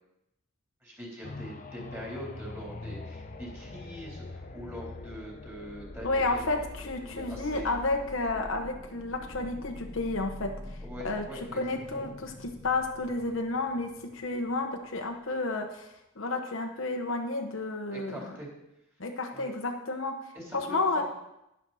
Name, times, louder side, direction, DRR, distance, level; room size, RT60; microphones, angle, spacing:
voice 1, 0.8-6.6 7.1-7.7 10.8-11.6 11.9-12.1 17.9-18.5 19.3-19.5 20.3-20.8, equal, 10° right, -4 dB, 3.7 m, -43 dB
sound 1, 1.2-14.9 15.4-15.5, left 2 dB, 40° left, 0.7 m, -44 dB
voice 2, 6.0-11.2 11.5-18.3 19.0-20.2 20.5-21.0, left 2 dB, 70° left, 4 dB, 1.1 m, -31 dB
11.0 x 11.0 x 4.3 m, 0.87 s
head